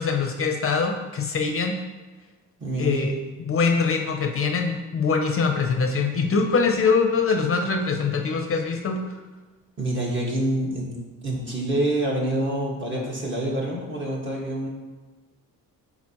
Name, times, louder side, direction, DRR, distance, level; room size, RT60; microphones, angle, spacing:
voice 1, 0.0-1.8 2.8-3.1 3.4-9.0, left 5 dB, 40° left, 4 dB, 0.6 m, -23 dB
voice 2, 2.6-3.1 9.8-10.9 11.2-14.7, right 1 dB, 35° right, -3 dB, 1.7 m, -26 dB
8.6 x 4.1 x 3.0 m, 1.2 s
cardioid pair, 115°, 34 cm